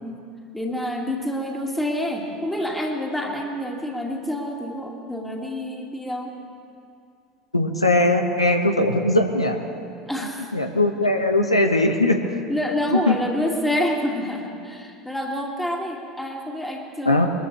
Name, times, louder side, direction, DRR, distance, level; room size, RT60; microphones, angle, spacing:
voice 1, 0.5-6.4 10.1-10.5 12.5-17.3, left 1 dB, 5° left, 1 dB, 2.2 m, -28 dB
voice 2, 7.5-9.6 10.5-12.4 12.9-13.2 17.0-17.3, left 1 dB, 85° left, 3 dB, 0.9 m, -20 dB
23.0 x 13.5 x 3.3 m, 2.5 s
figure-of-eight pair, 70°, 3 cm